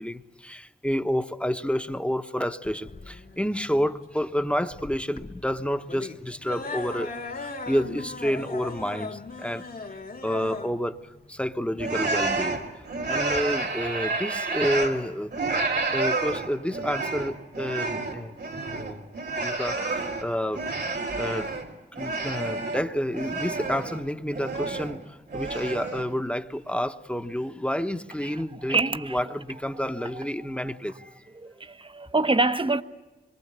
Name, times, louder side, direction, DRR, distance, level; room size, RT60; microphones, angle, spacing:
voice 1, 0.0-9.7 10.2-12.6 13.1-15.3 15.9-18.3 18.7-19.0 19.4-21.5 21.9-31.2, equal, 5° left, 1.2 m, -29 dB
sound 1, 2.6-12.7, left 3 dB, 55° left, 2.3 m, -38 dB
sound 2, 11.8-15.0 15.3-21.7 21.9-24.0 24.3-25.0 25.3-26.1, right 3 dB, 85° right, 3.0 m, -29 dB
voice 2, 28.7-29.2 30.0-30.3 31.3-32.8, right 3 dB, 30° right, 1.1 m, -26 dB
26.0 x 23.5 x 8.2 m
wide cardioid pair, 70°, 17 cm